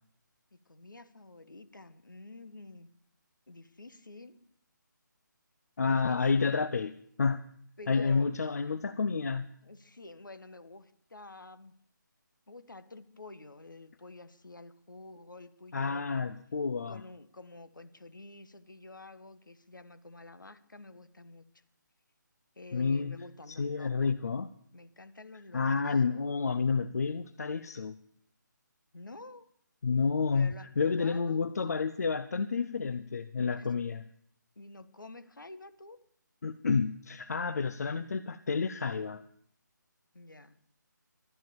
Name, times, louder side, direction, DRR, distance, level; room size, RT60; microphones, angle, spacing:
voice 1, 0.5-2.9 3.5-4.4 5.8-6.7 7.8-8.3 9.6-11.7 12.5-16.0 16.9-21.4 22.5-24.1 24.7-25.9 28.9-29.5 30.3-31.4 33.6-33.7 34.6-36.0 40.1-40.6, left 2 dB, 75° left, 12 dB, 1.4 m, -49 dB
voice 2, 5.8-6.9 7.2-7.4 7.9-9.5 15.7-17.0 22.7-23.2 23.5-24.5 25.5-27.9 29.8-34.1 36.4-39.2, left 5 dB, 55° left, 13 dB, 0.6 m, -30 dB
13.0 x 10.5 x 7.0 m, 0.64 s
figure-of-eight pair, 150°, 11 cm